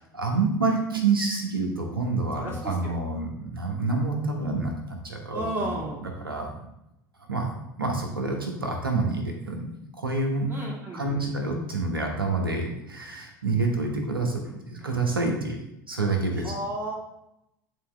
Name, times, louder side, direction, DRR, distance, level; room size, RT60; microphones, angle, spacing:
voice 1, 0.1-5.8 6.2-6.5 7.3-7.5 7.8-9.7 10.0-10.5 10.9-16.5, right 3 dB, 85° right, 2 dB, 1.3 m, -27 dB
voice 2, 2.3-3.0 5.3-6.1 10.5-11.4 16.4-16.9, right 1 dB, 20° right, -4 dB, 2.5 m, -34 dB
9.0 x 4.1 x 3.4 m, 0.84 s
figure-of-eight pair, 75°, 12 cm